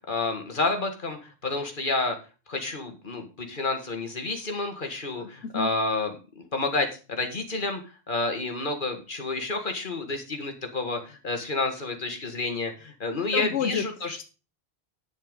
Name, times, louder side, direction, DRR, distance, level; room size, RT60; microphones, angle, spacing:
voice 1, 0.1-2.2 2.5-7.8 8.1-14.2, left 3 dB, 50° left, 5 dB, 2.1 m, -30 dB
voice 2, 5.2-5.7 13.3-14.2, left 7 dB, 90° left, 10 dB, 1.0 m, -31 dB
10.0 x 6.7 x 5.3 m, 0.33 s
omnidirectional pair, 1.1 m